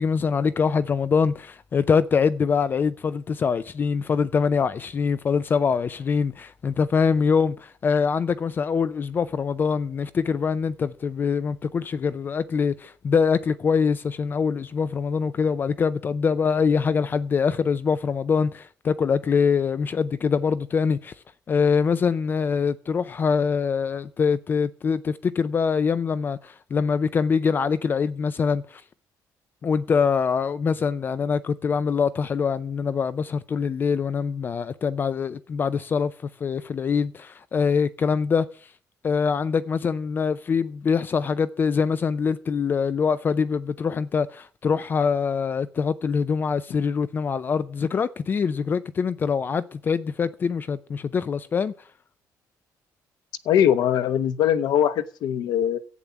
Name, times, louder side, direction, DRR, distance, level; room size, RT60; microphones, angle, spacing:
voice 1, 0.0-21.1 21.5-28.8 29.6-36.1 36.4-38.5 39.0-51.7, left 6 dB, 30° left, 0.5 m, -24 dB
voice 2, 53.4-55.8, left 9 dB, 80° left, 1.0 m, -21 dB
11.0 x 8.6 x 7.0 m
cardioid pair, 175°, 7 cm